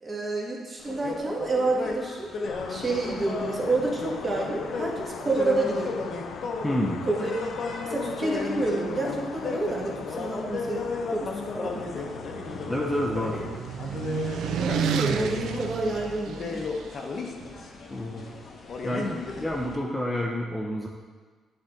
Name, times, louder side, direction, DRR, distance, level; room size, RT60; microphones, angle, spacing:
voice 1, 0.0-2.3 2.7-6.0 7.1-7.3 7.8-12.1 14.6-16.6 17.4-17.5, right 2 dB, 25° right, -2 dB, 1.3 m, -29 dB
sound 1, 0.8-19.8, left 3 dB, 45° left, 0.8 m, -35 dB
sound 2, 2.4-13.6, left 7 dB, 85° left, 0.4 m, -41 dB
voice 2, 6.6-7.1 12.7-13.4 17.9-18.3 18.8-20.9, left 1 dB, 5° left, -1 dB, 0.5 m, -29 dB
sound 3, 11.6-16.8, right 9 dB, 80° right, 0.3 m, -32 dB
9.8 x 3.6 x 3.8 m, 1.4 s
cardioid pair, 130°, 0 cm